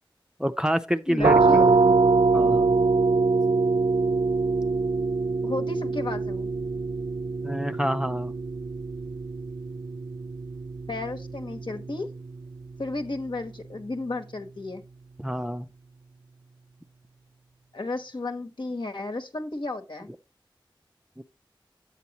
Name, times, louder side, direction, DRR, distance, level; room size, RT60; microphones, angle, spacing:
voice 1, 0.4-1.7 2.3-2.7 7.4-8.3 15.2-15.7 21.2-21.3, equal, 10° right, 0.5 m, -27 dB
voice 2, 1.1-1.8 5.4-6.5 10.9-12.1 12.8-14.8 17.7-20.1, left 2 dB, 65° left, 1.2 m, -33 dB
sound 1, 1.2-12.7, right 4 dB, 65° right, 0.4 m, -24 dB
8.3 x 8.2 x 3.0 m
wide cardioid pair, 50°, 9 cm